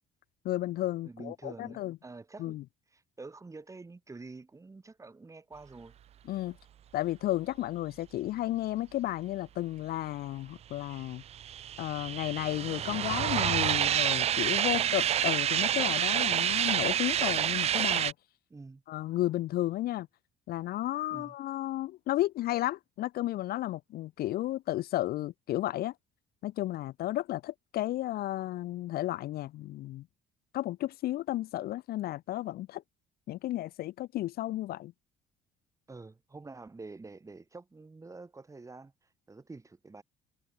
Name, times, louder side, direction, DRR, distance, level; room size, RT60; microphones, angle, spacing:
voice 1, 0.4-2.0 2.4-2.6 6.3-6.6 6.9-11.2 11.8-18.1 18.9-20.1 20.5-25.9 26.4-30.0 30.5-32.8 33.3-34.9, left 15 dB, 65° left, 0.6 m, -33 dB
voice 2, 1.0-2.6 2.9-6.0 14.7-15.0 18.5-18.8 21.1-21.3 35.9-38.9 39.3-40.0, right 3 dB, 20° right, 3.6 m, -47 dB
sound 1, 11.0-18.1, right 10 dB, 40° right, 0.4 m, -28 dB
cardioid pair, 110°, 17 cm